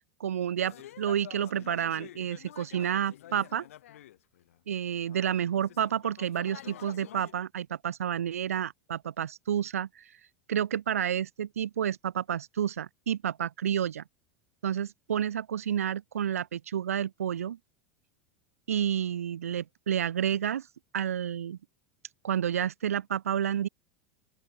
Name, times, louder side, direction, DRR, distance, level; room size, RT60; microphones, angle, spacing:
voice 1, 0.2-3.7 4.7-10.0 10.5-14.0 14.6-17.6 18.7-20.7 20.9-21.6 22.2-23.7, right 9 dB, 75° right, 0.4 m, -30 dB
sound 1, 0.6-4.6 5.0-7.3, left 13 dB, 70° left, 1.5 m, -48 dB
open air
figure-of-eight pair, 85°, 8 cm